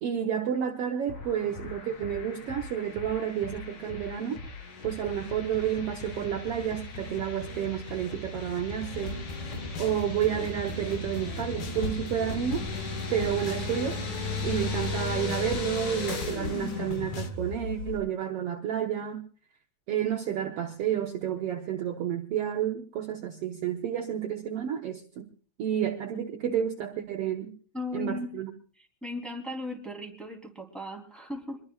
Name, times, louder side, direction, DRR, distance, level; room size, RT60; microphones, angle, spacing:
voice 1, 0.0-4.4 4.8-9.2 9.8-12.6 13.1-14.0 14.4-19.2 19.9-25.3 25.6-27.5 27.9-28.5, right 9 dB, 65° right, 3 dB, 1.7 m, -30 dB
sound 1, 1.1-18.0, left 3 dB, 90° left, 5.0 m, -37 dB
sound 2, 9.0-17.3, left 5 dB, 65° left, 1.0 m, -40 dB
voice 2, 27.7-28.3 29.0-31.6, left 1 dB, ahead, 0 dB, 2.8 m, -37 dB
24.5 x 22.0 x 2.4 m, 0.41 s
omnidirectional pair, 3.4 m